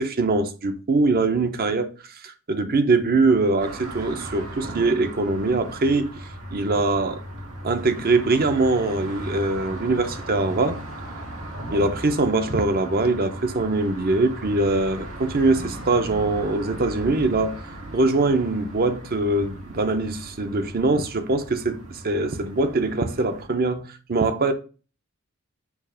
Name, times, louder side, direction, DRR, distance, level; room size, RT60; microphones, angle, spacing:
voice 1, 0.0-1.9 2.2-6.1 6.5-7.2 7.6-10.8 11.7-17.6 17.9-24.5, right 3 dB, 45° right, 0.7 m, -22 dB
sound 1, 3.6-23.5, right 1 dB, 80° right, 1.7 m, -37 dB
7.1 x 2.5 x 5.6 m
head